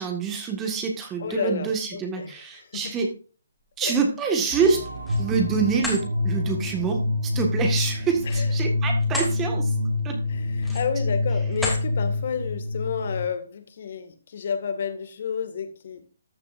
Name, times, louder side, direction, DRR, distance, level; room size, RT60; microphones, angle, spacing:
voice 1, 0.0-3.1 3.8-4.8 5.2-9.7 10.0-10.2, right 5 dB, 15° right, 3 dB, 1.7 m, -26 dB
voice 2, 1.2-2.9 3.8-3.9 8.3-8.5 10.3-16.0, left 7 dB, 55° left, 8 dB, 2.0 m, -31 dB
sound 1, 4.5-8.8 9.1-9.2 9.8-9.9, right 3 dB, 75° right, 4.1 m, -41 dB
sound 2, 4.7-5.3 5.7-6.0 8.2-9.4 9.8-10.0 10.6-11.0 11.5-11.9, left 1 dB, ahead, 2.9 m, -32 dB
sound 3, 5.1-13.2, left 2 dB, 50° right, 4.3 m, -26 dB
13.5 x 6.9 x 2.6 m, 0.38 s
hypercardioid pair, 145°, 0 cm